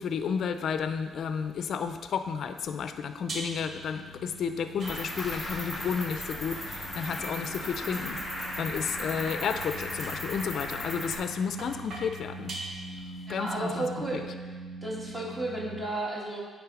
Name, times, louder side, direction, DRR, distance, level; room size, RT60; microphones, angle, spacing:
voice 1, 0.0-12.6 13.3-13.9 14.1-14.2, left 6 dB, 65° left, 9 dB, 0.4 m, -32 dB
sound 1, 3.1-15.8, right 1 dB, 85° right, 1.1 m, -45 dB
sound 2, 3.3-3.8 4.8-5.5 6.4-13.3, right 2 dB, 50° right, 1.1 m, -44 dB
Cricket, 4.8-11.2, left 1 dB, 15° left, 2.3 m, -36 dB
voice 2, 13.4-14.2 14.8-16.4, right 2 dB, 25° right, -4 dB, 1.9 m, -33 dB
8.8 x 3.5 x 4.9 m, 1.3 s
cardioid pair, 90°, 0 cm